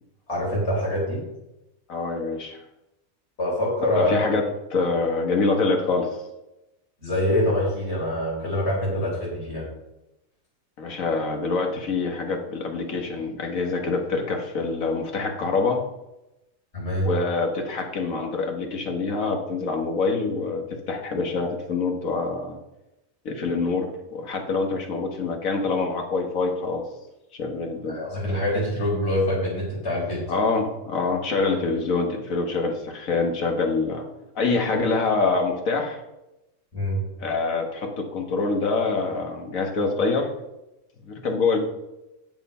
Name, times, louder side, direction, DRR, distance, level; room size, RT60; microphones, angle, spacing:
voice 1, 0.3-1.2 3.4-4.2 7.0-9.6 16.7-17.1 27.9-30.2 36.7-37.0, left 1 dB, 50° left, -5 dB, 4.9 m, -25 dB
voice 2, 1.9-2.6 4.0-4.4 4.7-6.2 10.8-15.8 17.0-22.6 23.3-26.8 27.3-28.0 30.3-34.1 34.4-36.0 37.2-40.3 41.0-41.6, left 3 dB, 70° left, 3 dB, 1.8 m, -25 dB
9.6 x 6.8 x 5.5 m, 0.94 s
omnidirectional pair, 1.5 m